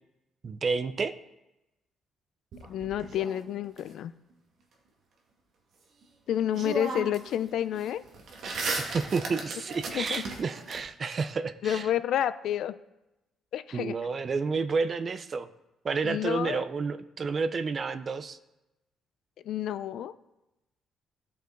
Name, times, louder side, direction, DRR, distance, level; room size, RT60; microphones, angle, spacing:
voice 1, 0.4-1.1 8.6-11.9 13.7-15.5 15.8-18.4, right 4 dB, 30° right, 13 dB, 0.5 m, -30 dB
sound 1, 2.5-3.8 6.0-6.1 6.5-7.3 7.6-10.8, right 3 dB, 55° right, 1.6 m, -36 dB
voice 2, 2.7-4.1 6.3-8.0 9.9-10.2 11.6-12.8 13.5-14.0 16.0-16.6 19.4-20.1, left 10 dB, 65° left, 14 dB, 0.4 m, -29 dB
15.5 x 5.5 x 3.8 m, 0.96 s
cardioid pair, 155°, 0 cm